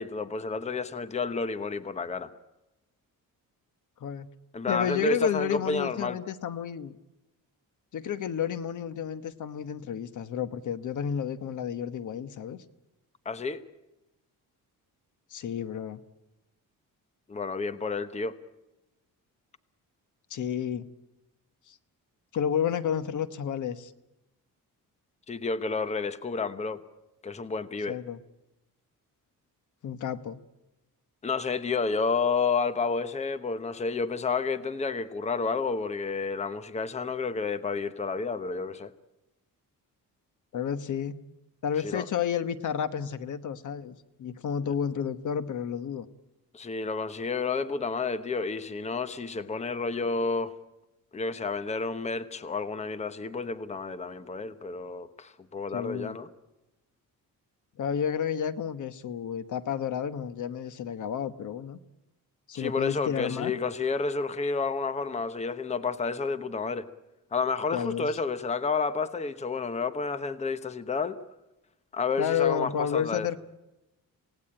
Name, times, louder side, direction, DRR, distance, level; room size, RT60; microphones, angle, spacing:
voice 1, 0.0-2.3 4.5-6.2 13.2-13.6 17.3-18.3 25.3-26.8 27.2-28.0 31.2-38.9 41.8-42.1 46.5-50.5 51.1-56.3 62.5-66.9 67.3-71.2 71.9-73.3, left 4 dB, 20° left, 13 dB, 0.9 m, -30 dB
voice 2, 4.7-6.9 7.9-12.6 15.3-16.0 20.3-20.9 21.7-21.8 22.3-23.9 27.9-28.2 29.8-30.4 40.5-41.2 41.6-46.1 55.7-56.2 57.8-61.8 62.5-63.5 67.7-68.1 72.2-73.4, left 8 dB, 60° left, 13 dB, 1.2 m, -31 dB
27.5 x 18.0 x 8.8 m, 0.97 s
cardioid pair, 155°, 35 cm